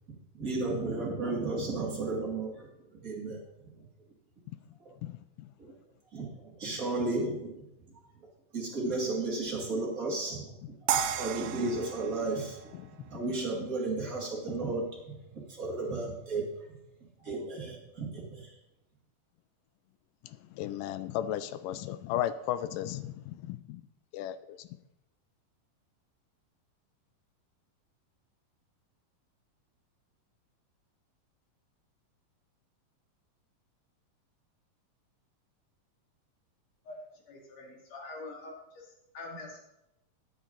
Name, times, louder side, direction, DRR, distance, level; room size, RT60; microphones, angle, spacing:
voice 1, 0.3-2.7 3.0-3.4 4.9-5.0 5.6-5.7 6.1-6.3 6.6-7.6 8.5-10.5 11.2-12.6 13.0-15.1 15.5-16.5 17.2-18.5, right 3 dB, 30° right, 2.2 m, -33 dB
voice 2, 5.0-5.5 12.7-12.9 20.2-23.8 24.1-24.7, left 12 dB, 80° left, 2.1 m, -35 dB
sound 1, 10.9-13.9, right 9 dB, 90° right, 2.5 m, -34 dB
voice 3, 37.3-38.8 39.1-39.6, left 2 dB, 50° left, 3.5 m, -44 dB
13.0 x 9.4 x 3.9 m
omnidirectional pair, 4.0 m